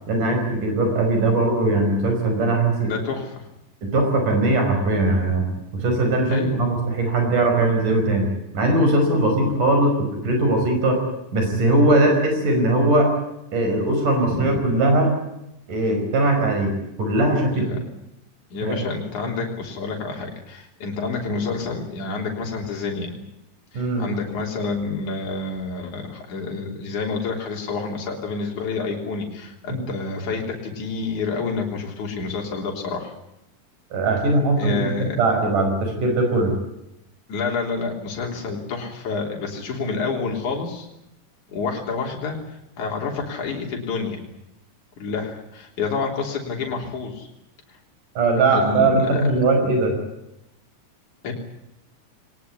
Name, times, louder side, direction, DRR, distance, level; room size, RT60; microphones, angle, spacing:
voice 1, 0.1-2.9 3.8-5.4 5.7-8.3 8.5-11.0 11.3-13.1 13.5-15.1 15.7-16.7 17.0-17.7 18.6-18.8 23.7-24.1 29.7-29.8 33.9-36.5 48.1-50.0, right 2 dB, 80° right, 4 dB, 6.9 m, -20 dB
voice 2, 2.8-3.5 6.3-6.8 14.3-14.6 17.5-17.8 18.5-23.1 23.7-33.1 34.6-35.2 37.3-40.9 41.5-42.4 42.8-44.2 45.0-47.3 47.7-47.8 48.5-49.3 51.2-51.3, left 4 dB, 70° left, 0 dB, 4.8 m, -28 dB
22.5 x 19.5 x 9.7 m, 0.86 s
omnidirectional pair, 3.6 m